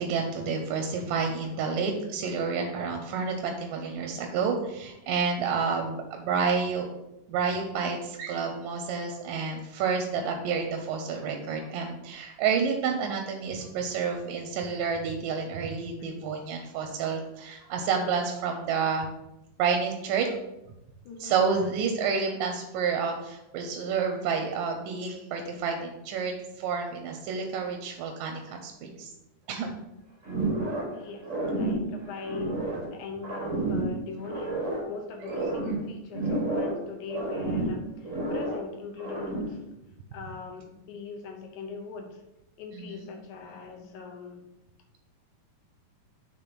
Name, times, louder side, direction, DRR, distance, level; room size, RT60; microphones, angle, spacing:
voice 1, 0.0-6.9 7.3-19.1 19.6-20.4 21.2-29.1 29.5-29.7 42.7-43.1, right 5 dB, 85° right, 3 dB, 2.4 m, -29 dB
voice 2, 21.1-21.4 30.9-32.6 32.9-39.6 40.1-42.2 42.6-44.4, left 5 dB, 75° left, 3 dB, 2.2 m, -41 dB
sound 1, 30.2-31.0 31.2-32.9 33.2-34.9 35.2-36.8 37.1-38.7 39.0-39.6, right 2 dB, 55° right, 0.8 m, -30 dB
6.9 x 3.6 x 6.0 m, 0.91 s
omnidirectional pair, 3.8 m